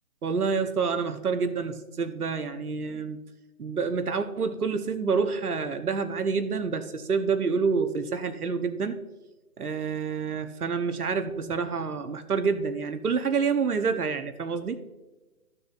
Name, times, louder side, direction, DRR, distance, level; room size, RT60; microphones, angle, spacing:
voice 1, 0.2-3.2 3.6-9.0 9.6-14.8, right 5 dB, 80° right, 8 dB, 1.0 m, -28 dB
14.5 x 6.8 x 2.5 m, 1.1 s
figure-of-eight pair, 145°, 44 cm